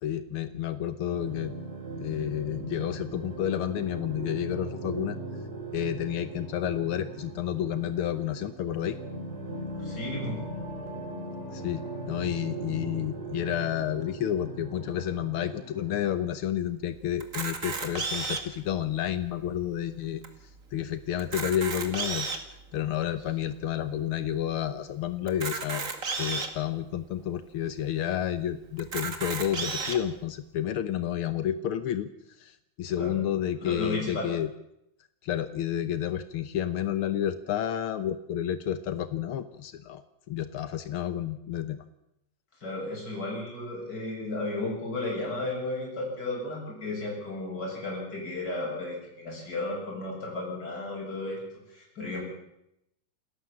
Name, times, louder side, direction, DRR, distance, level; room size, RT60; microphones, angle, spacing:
voice 1, 0.0-1.5 2.0-5.2 5.7-9.0 11.5-20.2 20.7-22.3 22.7-25.9 26.2-32.1 32.4-34.5 35.2-40.0 40.3-41.8, left 10 dB, 85° left, 12 dB, 1.2 m, -30 dB
sound 1, 1.1-16.3, right 2 dB, 80° right, 6.2 m, -39 dB
voice 2, 9.8-10.4 33.0-33.1 33.6-34.3 42.6-51.4 51.7-52.2, left 2 dB, 30° left, -2 dB, 8.1 m, -34 dB
Camera, 17.2-18.6 19.3-19.4 19.6-19.7 20.2-20.3 21.1-22.5 23.2-23.3 25.3-26.5 27.2-27.3 27.6-27.7 28.8-30.0, right 4 dB, 30° right, 1.8 m, -32 dB
28.0 x 13.5 x 7.4 m, 0.81 s
omnidirectional pair, 3.7 m